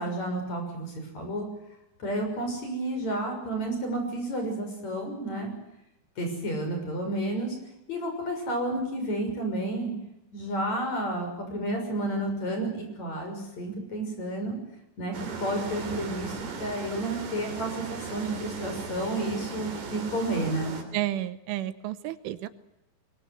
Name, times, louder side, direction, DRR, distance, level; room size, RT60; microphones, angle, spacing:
voice 1, 0.0-1.5 2.0-5.5 6.2-7.6 7.9-9.9 10.3-14.6 15.0-15.1 15.4-20.8, right 1 dB, 35° left, 4 dB, 7.3 m, -31 dB
sound 1, 15.1-20.8, right 4 dB, 45° right, 4.5 m, -38 dB
voice 2, 20.9-22.5, right 13 dB, 80° right, 13 dB, 3.5 m, -31 dB
24.0 x 22.0 x 8.1 m, 0.87 s
omnidirectional pair, 5.5 m